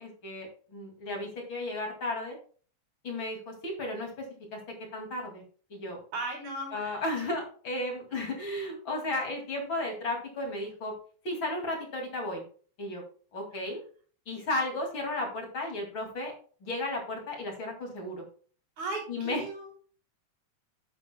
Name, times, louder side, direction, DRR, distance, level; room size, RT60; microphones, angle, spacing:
voice 1, 0.0-2.4 3.0-4.2 4.5-4.6 4.9-5.4 5.7-6.0 6.7-10.9 11.2-12.4 12.8-13.0 13.3-13.8 14.3-16.3 16.6-18.2 19.1-19.4, left 2 dB, 45° left, 1 dB, 2.9 m, -34 dB
voice 2, 6.1-7.0 8.2-8.4 18.8-19.7, right 2 dB, 75° right, 0 dB, 4.8 m, -37 dB
10.5 x 9.9 x 2.2 m, 0.42 s
omnidirectional pair, 3.3 m